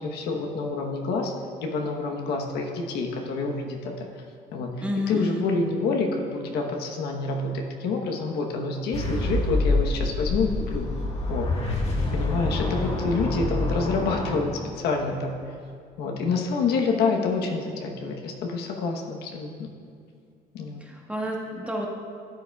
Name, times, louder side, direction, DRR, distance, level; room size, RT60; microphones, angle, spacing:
voice 1, 0.0-1.3 1.6-4.2 4.5-10.9 11.3-11.5 12.1-15.6 16.0-19.7 20.5-20.8, left 4 dB, 75° left, 2 dB, 1.0 m, -28 dB
voice 2, 4.8-5.4 20.9-21.9, left 1 dB, 5° right, -1 dB, 1.3 m, -30 dB
sound 1, 8.9-15.1, left 2 dB, 40° left, 1.5 m, -27 dB
13.0 x 8.3 x 2.3 m, 2.2 s
cardioid pair, 110°, 17 cm